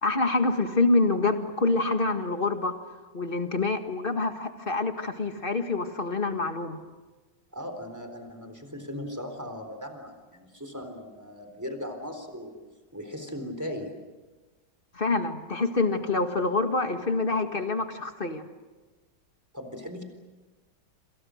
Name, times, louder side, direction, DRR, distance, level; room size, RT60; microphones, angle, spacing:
voice 1, 0.0-2.7 3.1-6.8 14.9-18.5, left 3 dB, 30° left, 6 dB, 1.9 m, -26 dB
voice 2, 7.5-12.6 12.9-13.9 19.5-20.0, left 1 dB, 10° right, 6 dB, 4.0 m, -38 dB
28.0 x 27.5 x 6.5 m, 1.2 s
omnidirectional pair, 1.9 m